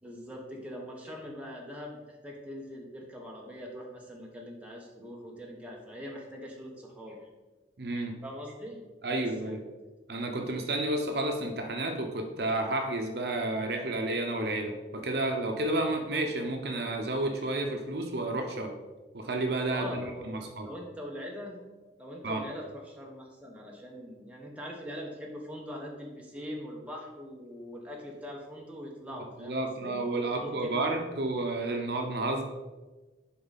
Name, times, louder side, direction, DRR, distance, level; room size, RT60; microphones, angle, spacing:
voice 1, 0.0-7.3 8.2-9.6 19.7-21.6 22.0-30.0 30.3-30.9, equal, 10° right, -2 dB, 1.2 m, -42 dB
voice 2, 7.8-8.1 9.0-9.6 10.1-18.7 19.1-20.7 22.2-22.4 29.4-32.4, right 2 dB, 65° right, 4 dB, 0.8 m, -31 dB
11.0 x 3.9 x 4.1 m, 1.2 s
head